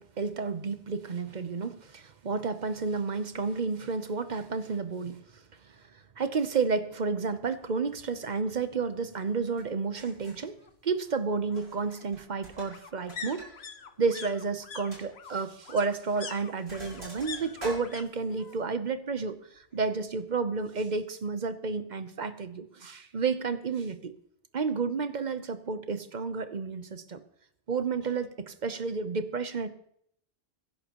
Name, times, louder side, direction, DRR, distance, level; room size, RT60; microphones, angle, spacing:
voice 1, 0.0-5.2 6.2-10.6 10.8-13.5 14.0-24.1 24.5-27.2 27.7-29.7, right 4 dB, 45° right, 11 dB, 0.9 m, -31 dB
sound 1, 7.2-7.3 7.6-7.7 8.0-9.0 10.3-18.1 18.3-18.9 19.1-20.2 20.5-20.6, left 6 dB, 65° left, 1.2 m, -45 dB
Sink (filling or washing), 9.6-9.7 10.0-10.5 11.5-11.9 12.1-13.5 13.8-13.9 14.4-14.5 14.9-15.1 15.9-16.1 16.4-18.6, right 2 dB, 65° right, 5.8 m, -45 dB
22.5 x 10.5 x 3.0 m, 0.70 s
omnidirectional pair, 1.2 m